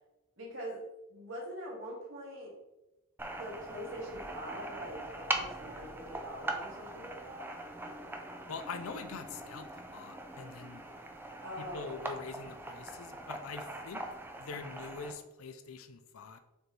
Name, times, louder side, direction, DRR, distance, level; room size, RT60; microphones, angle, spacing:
voice 1, 0.4-0.8 1.1-2.6 3.3-7.5 11.4-11.9, equal, 65° right, -3 dB, 2.0 m, -43 dB
sound 1, 3.2-15.1, right 2 dB, 10° right, 0.5 m, -41 dB
voice 2, 8.5-10.8 11.6-14.0 14.4-16.4, left 5 dB, 80° left, 9 dB, 0.5 m, -44 dB
6.6 x 4.4 x 3.3 m, 1.0 s
head